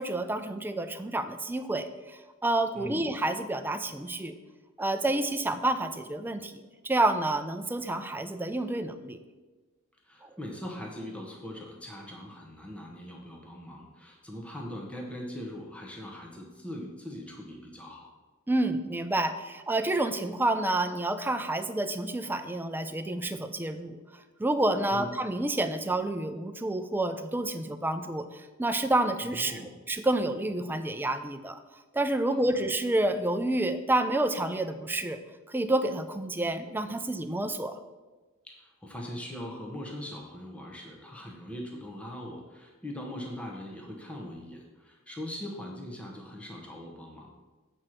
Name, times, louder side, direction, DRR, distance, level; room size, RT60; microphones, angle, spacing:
voice 1, 0.0-4.4 4.8-6.5 6.8-9.2 10.2-10.3 18.5-24.0 24.4-29.6 29.9-31.6 31.9-35.2 35.5-37.8, right 2 dB, 10° right, 9 dB, 0.4 m, -29 dB
voice 2, 2.7-3.1 10.0-18.1 24.9-25.1 29.3-29.7 32.3-32.5 38.4-47.3, equal, 5° left, -1 dB, 0.9 m, -41 dB
7.7 x 4.4 x 6.3 m, 1.3 s
head